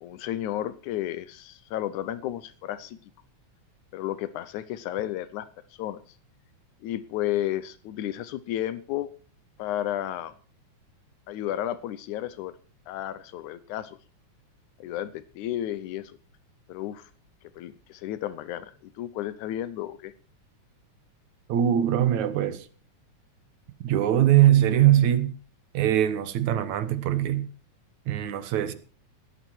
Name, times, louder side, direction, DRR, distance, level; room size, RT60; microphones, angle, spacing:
voice 1, 0.0-3.0 3.9-5.5 5.7-6.0 6.8-9.1 9.6-10.3 11.3-12.6 12.9-14.0 14.8-16.2 16.7-17.1 17.6-20.1, left 12 dB, 90° left, 2.3 m, -32 dB
voice 2, 21.5-22.7 23.8-25.3 25.7-27.5 28.1-28.7, right 11 dB, 75° right, 2.6 m, -22 dB
17.5 x 13.5 x 4.5 m
omnidirectional pair, 3.3 m